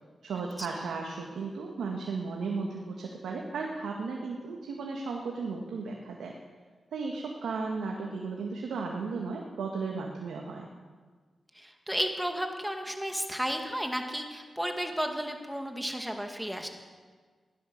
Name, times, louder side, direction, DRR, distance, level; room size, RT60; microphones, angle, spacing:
voice 1, 0.2-6.3 6.9-10.7, right 4 dB, 85° right, 0 dB, 1.5 m, -35 dB
voice 2, 11.5-16.7, equal, 5° right, 4 dB, 2.2 m, -33 dB
15.0 x 11.0 x 6.4 m, 1.5 s
cardioid pair, 50°, 0 cm